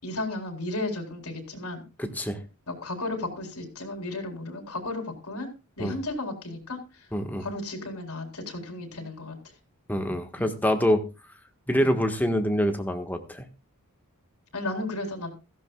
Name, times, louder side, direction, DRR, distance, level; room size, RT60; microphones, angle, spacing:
voice 1, 0.0-1.8 2.7-5.5 5.8-7.1 7.4-9.5 10.4-10.5 11.8-12.0 14.5-15.3, left 2 dB, 80° left, 4 dB, 3.9 m, -34 dB
voice 2, 2.0-2.4 5.8-5.9 7.1-7.4 9.9-11.0 11.7-13.4, equal, 10° left, 6 dB, 1.5 m, -25 dB
16.0 x 14.5 x 2.4 m, 0.28 s
head